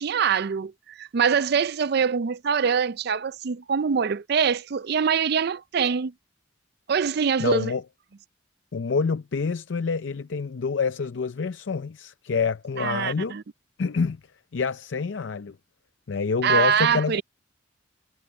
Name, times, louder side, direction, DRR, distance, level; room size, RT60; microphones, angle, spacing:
voice 1, 0.0-6.1 6.9-7.7 12.8-13.4 16.4-17.2, right 6 dB, 55° right, 0.4 m, -24 dB
voice 2, 7.4-7.8 8.7-13.4 13.8-14.2 14.5-15.6 16.1-17.2, left 5 dB, 65° left, 0.5 m, -27 dB
head